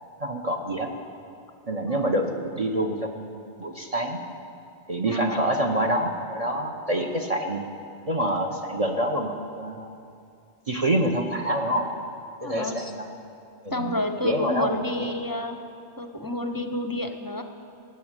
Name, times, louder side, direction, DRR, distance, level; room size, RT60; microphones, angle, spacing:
voice 1, 0.2-0.9 1.7-4.2 4.9-7.6 8.1-9.9 10.7-11.9 12.4-13.1 13.6-15.1, right 1 dB, 35° right, 3 dB, 0.9 m, -27 dB
voice 2, 5.1-5.5 12.4-12.9 13.7-15.6 16.0-17.4, left 1 dB, 25° left, 6 dB, 0.7 m, -30 dB
17.5 x 7.2 x 8.9 m, 2.5 s
omnidirectional pair, 1.1 m